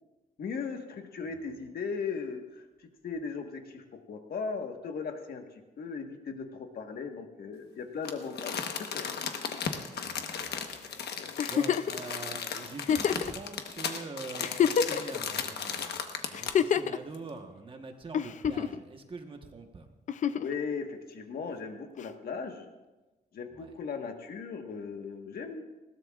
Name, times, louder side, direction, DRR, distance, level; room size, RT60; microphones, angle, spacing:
voice 1, 0.4-9.1 11.2-11.4 20.4-22.7 23.3-25.7, left 5 dB, 65° left, 4 dB, 1.4 m, -38 dB
Crumpling crinkling, 8.0-16.7 17.1-17.2, left 6 dB, 85° left, 1.1 m, -36 dB
voice 2, 9.9-11.1 11.5-19.9 23.5-23.7, right 3 dB, 30° right, 4 dB, 1.2 m, -44 dB
Giggle, 11.4-12.0 12.8-13.3 14.0-14.1 14.4-15.2 16.3-17.0 18.1-18.8 20.1-20.5 22.0-22.1, left 8 dB, 50° left, 0.4 m, -27 dB
20.0 x 17.0 x 2.4 m, 1.1 s
wide cardioid pair, 165°, 17 cm